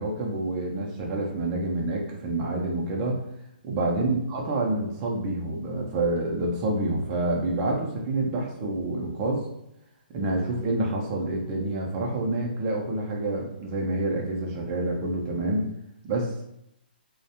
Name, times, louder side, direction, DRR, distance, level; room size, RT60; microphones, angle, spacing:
voice 1, 0.0-3.2 3.7-9.5 10.1-15.6 16.0-16.4, right 2 dB, 20° right, -1 dB, 0.4 m, -28 dB
2.2 x 2.1 x 2.8 m, 0.79 s
hypercardioid pair, 165°, 6 cm